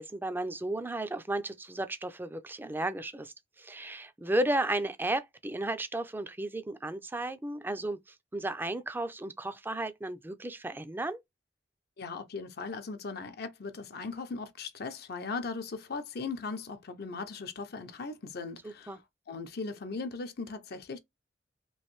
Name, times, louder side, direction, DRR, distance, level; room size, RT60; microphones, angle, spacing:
voice 1, 0.0-11.2 18.6-19.0, right 1 dB, 10° right, 0.4 m, -34 dB
voice 2, 12.0-19.0 19.3-21.0, left 4 dB, 60° left, 0.6 m, -38 dB
3.1 x 2.5 x 2.9 m
head